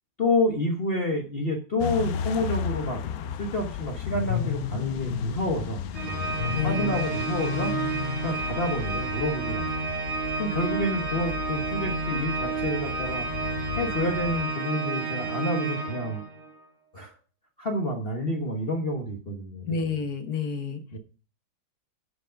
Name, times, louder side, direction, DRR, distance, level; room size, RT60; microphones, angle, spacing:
voice 1, 0.2-7.7 8.2-9.7 10.4-13.3 13.8-16.2 16.9-17.1 17.6-19.7 20.9-21.0, left 1 dB, 35° left, 0 dB, 1.2 m, -29 dB
sound 1, 1.8-14.5, left 9 dB, 85° left, 0.8 m, -34 dB
Organ, 5.9-16.5, right 4 dB, 90° right, 3.3 m, -31 dB
voice 2, 6.5-7.0 19.7-21.0, left 5 dB, 50° left, 7 dB, 1.5 m, -30 dB
11.0 x 5.2 x 5.1 m, 0.37 s
omnidirectional pair, 2.2 m